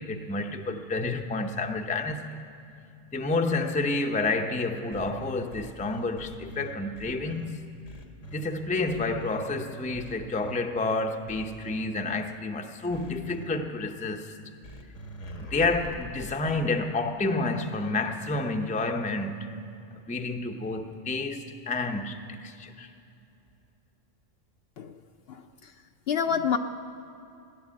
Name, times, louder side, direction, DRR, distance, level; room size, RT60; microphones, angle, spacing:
voice 1, 0.0-2.4 3.1-7.6 8.3-14.3 15.4-19.5 20.1-22.9, left 3 dB, 10° left, 4 dB, 0.5 m, -29 dB
sound 1, 4.9-7.5 7.8-8.4 8.9-9.4 9.9-10.6 11.3-11.8 12.9-13.5 14.6-16.6, right 1 dB, 75° left, 1.7 m, -43 dB
voice 2, 25.3-25.7 26.1-26.6, left 7 dB, 60° left, 7 dB, 0.8 m, -28 dB
17.0 x 11.0 x 7.5 m, 2.7 s
omnidirectional pair, 1.3 m